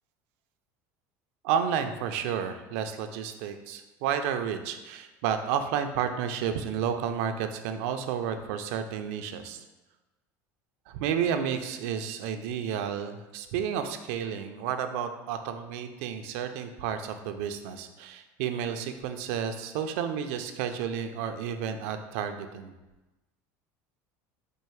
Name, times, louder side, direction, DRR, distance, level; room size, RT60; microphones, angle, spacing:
voice 1, 1.4-9.6 10.9-22.7, right 8 dB, 75° right, 7 dB, 0.5 m, -31 dB
4.6 x 2.5 x 4.7 m, 1.1 s
supercardioid pair, 130°, 7 cm